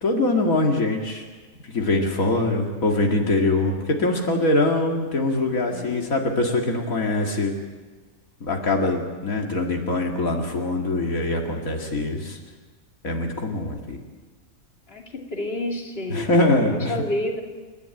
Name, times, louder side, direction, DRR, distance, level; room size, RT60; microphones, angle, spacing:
voice 1, 0.0-1.2 1.7-7.5 8.4-12.4 13.0-14.0 16.1-16.9, left 2 dB, 80° left, 1 dB, 2.6 m, -23 dB
voice 2, 5.7-6.1 14.9-16.4 16.7-17.4, left 1 dB, 45° left, 0 dB, 3.0 m, -30 dB
29.0 x 12.5 x 9.0 m, 1.4 s
omnidirectional pair, 1.4 m